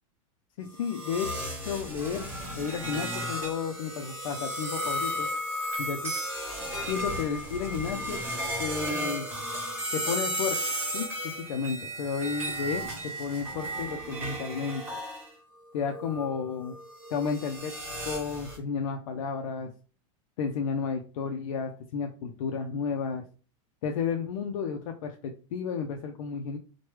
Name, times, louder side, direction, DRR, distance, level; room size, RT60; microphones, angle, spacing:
voice 1, 0.6-1.3 1.6-2.3 2.6-5.3 5.8-6.1 6.8-8.2 8.6-9.3 9.9-10.6 10.9-11.1 11.5-12.9 13.2-14.8 15.7-16.8 17.1-17.7 18.1-19.7 20.4-23.2 23.8-26.6, left 6 dB, 85° left, 3 dB, 0.5 m, -32 dB
sound 1, 0.8-15.3 15.9-18.6, equal, 15° right, 1.1 m, -34 dB
3.1 x 2.2 x 3.1 m, 0.37 s
supercardioid pair, 165°, 17 cm